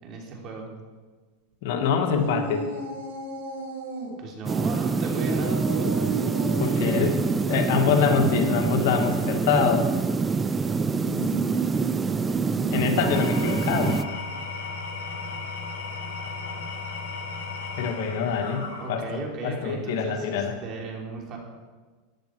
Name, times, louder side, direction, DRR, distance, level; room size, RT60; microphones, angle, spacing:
voice 1, 0.0-0.7 4.2-6.2 6.7-7.1 18.8-21.4, right 4 dB, 35° right, 0 dB, 3.2 m, -36 dB
voice 2, 1.6-2.7 6.6-7.1 7.5-9.9 12.7-14.0 17.8-20.6, left 6 dB, 65° left, 4 dB, 2.0 m, -25 dB
sound 1, 2.1-4.1 5.1-7.1 10.9-13.1, right 3 dB, 85° right, 4.4 m, -33 dB
sound 2, 4.5-14.1, right 4 dB, 15° right, 0.5 m, -25 dB
Engine / Tools, 12.9-19.3, left 4 dB, 80° left, 4.1 m, -35 dB
14.0 x 10.5 x 4.7 m, 1.3 s
supercardioid pair, 135°, 0 cm